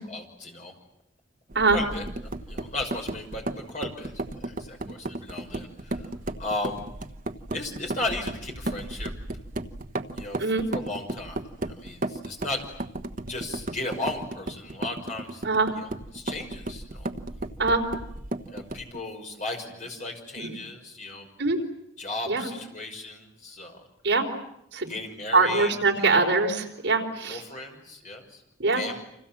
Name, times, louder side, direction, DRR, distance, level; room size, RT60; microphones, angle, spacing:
voice 1, 0.1-0.7 1.7-2.0 2.5-4.1 4.4-6.0 6.4-6.8 7.5-9.1 10.1-10.4 10.7-11.4 11.6-12.6 13.3-15.4 15.8-15.9 16.1-17.1 18.5-21.3 22.0-23.8 24.9-25.7 26.0-26.3 27.3-28.4 28.7-29.0, left 2 dB, 40° left, 2 dB, 5.8 m, -35 dB
sound 1, 1.5-19.0, right 2 dB, 45° right, 1.2 m, -35 dB
voice 2, 15.4-15.7 17.6-17.8 20.4-20.5 21.4-21.6 22.3-22.5 24.0-24.3 24.7-24.9 25.3-27.4 28.6-28.9, right 3 dB, 65° right, 2 dB, 4.1 m, -23 dB
30.0 x 26.5 x 7.5 m, 0.78 s
head